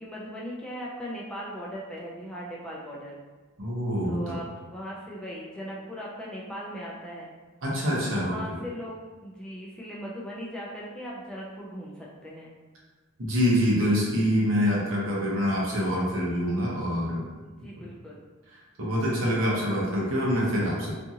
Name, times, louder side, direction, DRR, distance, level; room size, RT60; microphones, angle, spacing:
voice 1, 0.0-3.2 4.1-7.3 8.0-12.5 17.4-18.2, equal, 5° left, -5 dB, 0.3 m, -39 dB
voice 2, 3.6-4.3 7.6-8.6 13.2-17.3 17.8-17.9 18.8-20.9, equal, 75° right, -5 dB, 0.8 m, -25 dB
2.6 x 2.4 x 2.7 m, 1.3 s
head